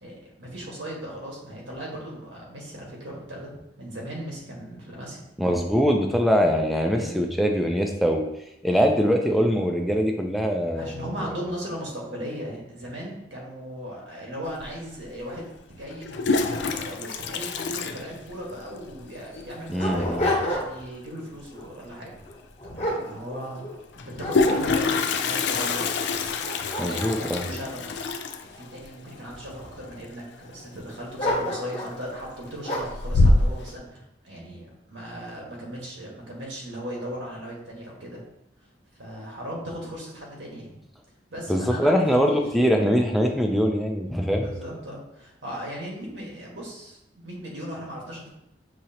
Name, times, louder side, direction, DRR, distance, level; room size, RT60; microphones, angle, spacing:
voice 1, 0.0-5.2 6.9-7.1 10.7-22.2 22.6-23.7 24.1-26.0 26.8-28.1 28.4-38.2 39.0-40.8 41.3-42.4 44.4-48.3, equal, 80° right, -3 dB, 1.5 m, -37 dB
voice 2, 5.4-8.2 8.6-11.0 19.7-20.3 26.8-27.4 41.5-44.5, equal, ahead, 2 dB, 0.4 m, -22 dB
Toilet flush, 14.6-14.7 15.9-18.7 19.0-19.1 19.4-19.5 19.7-20.1 21.9-22.0 22.3-22.4 23.9-30.6 30.9-31.4 31.8-32.3 32.7-33.7, left 3 dB, 65° left, 0.4 m, -26 dB
Dog, 18.6-18.7 19.3-20.9 21.4-21.7 22.3-23.8 24.2-25.1 25.7-25.8 26.3-28.6 29.3-29.9 31.2-32.0 32.6-33.0, left 1 dB, 35° left, 1.2 m, -30 dB
6.4 x 2.9 x 2.9 m, 0.83 s
head